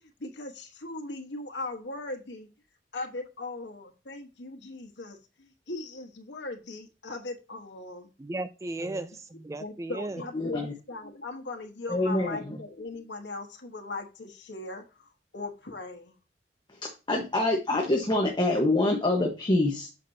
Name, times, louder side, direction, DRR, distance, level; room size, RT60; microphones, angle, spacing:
voice 1, 0.0-2.5 2.9-8.1 9.6-16.2, left 2 dB, 85° left, 3 dB, 1.3 m, -39 dB
voice 2, 8.2-10.2, right 2 dB, 15° right, 12 dB, 0.3 m, -35 dB
voice 3, 10.3-10.7 11.9-12.6 16.7-19.9, left 2 dB, 25° left, 1 dB, 1.2 m, -26 dB
8.2 x 6.1 x 2.7 m, 0.31 s
head